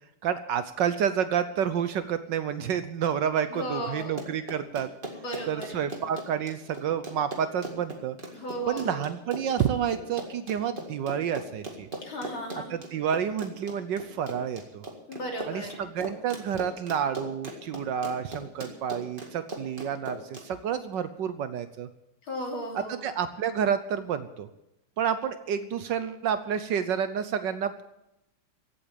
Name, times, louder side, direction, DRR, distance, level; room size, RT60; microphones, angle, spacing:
voice 1, 0.2-4.9 5.5-8.2 8.7-11.9 12.7-14.8 15.5-21.9 22.7-24.5 25.0-27.8, right 8 dB, 65° right, 12 dB, 1.3 m, -29 dB
voice 2, 3.5-4.1 5.2-5.7 8.3-9.1 12.0-12.8 15.1-15.8 22.3-23.0, equal, 70° left, 0 dB, 3.8 m, -35 dB
Run, 4.0-20.5, right 2 dB, 25° right, 2.0 m, -39 dB
16.0 x 8.3 x 8.8 m, 0.87 s
omnidirectional pair, 2.3 m